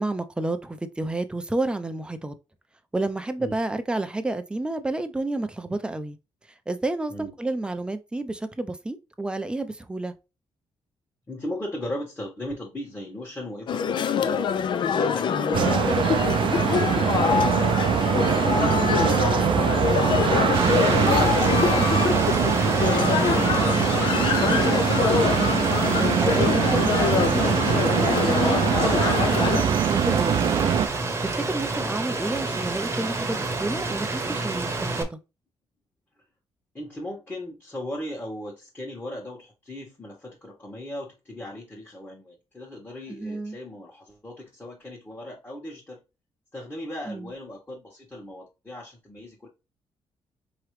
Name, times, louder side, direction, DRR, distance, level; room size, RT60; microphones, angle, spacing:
voice 1, 0.0-2.3 2.9-6.2 6.7-10.1 18.5-18.9 25.1-25.6 26.0-30.8 31.2-35.2 43.1-43.6 47.1-47.3, right 2 dB, 10° right, 0.5 m, -30 dB
voice 2, 11.3-14.5 14.9-17.8 18.3-20.4 21.1-24.1 31.7-31.9 36.7-46.0 46.5-49.5, left 1 dB, 15° left, 1.4 m, -37 dB
sound 1, 13.7-29.6, left 7 dB, 55° left, 0.5 m, -25 dB
sound 2, 15.5-30.9, right 8 dB, 60° right, 0.5 m, -23 dB
Rain, 20.5-35.0, right 3 dB, 25° right, 1.0 m, -29 dB
4.7 x 3.0 x 3.2 m
cardioid pair, 110°, 10 cm